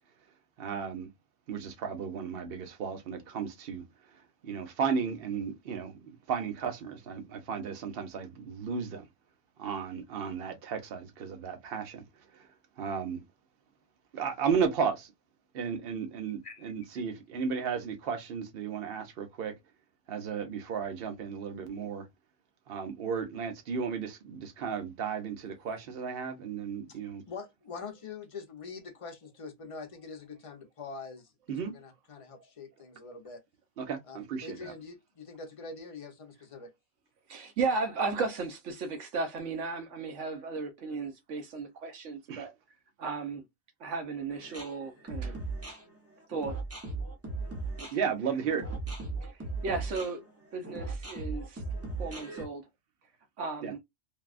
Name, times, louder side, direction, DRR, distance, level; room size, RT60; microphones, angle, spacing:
voice 1, 0.6-1.1 1.5-3.8 4.1-9.1 9.6-12.0 12.3-12.5 12.8-13.2 14.1-15.1 15.5-19.5 20.1-22.1 22.7-27.2 31.5-31.7 33.8-34.7 42.3-42.5 47.9-48.6 53.6-53.7, right 6 dB, 55° right, 0.9 m, -34 dB
voice 2, 27.3-33.4 34.1-36.7, left 4 dB, 35° left, 0.7 m, -44 dB
voice 3, 37.3-42.5 43.0-43.4 43.8-45.4 46.3-46.6 47.8-47.9 49.2-49.3 49.6-50.2 50.5-51.6 52.0-52.6 53.4-53.8, right 4 dB, 70° right, 1.0 m, -35 dB
sound 1, 44.3-52.4, right 3 dB, 15° right, 0.6 m, -37 dB
3.3 x 2.3 x 2.4 m
omnidirectional pair, 1.3 m